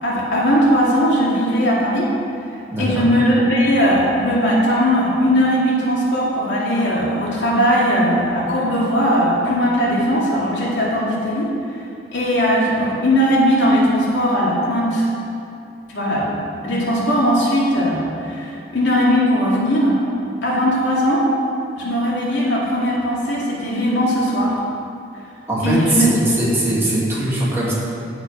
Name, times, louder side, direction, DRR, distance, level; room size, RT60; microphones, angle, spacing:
voice 1, 0.0-2.1 2.8-11.5 12.1-15.1 15.9-16.4 16.6-19.9 20.4-21.3 21.8-24.6 25.6-26.1, equal, 80° left, -5 dB, 2.5 m, -18 dB
voice 2, 2.7-3.1 25.5-27.7, right 1 dB, 15° right, -8 dB, 2.6 m, -20 dB
11.0 x 7.9 x 5.2 m, 2.5 s
head